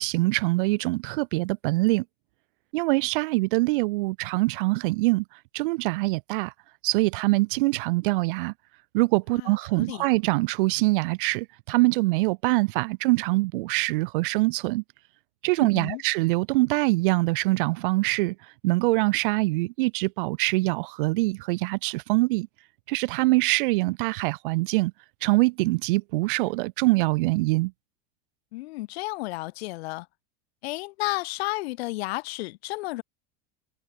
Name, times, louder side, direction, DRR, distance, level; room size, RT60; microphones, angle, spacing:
voice 1, 0.0-2.0 2.7-5.2 5.5-6.5 6.8-8.5 8.9-14.8 15.4-18.4 18.6-22.5 22.9-24.9 25.2-27.7, right 23 dB, 60° right, 0.4 m, -24 dB
voice 2, 9.4-10.1 15.6-16.0 28.5-30.1 30.6-33.0, left 20 dB, 80° left, 0.8 m, -32 dB
supercardioid pair, 180°, 31 cm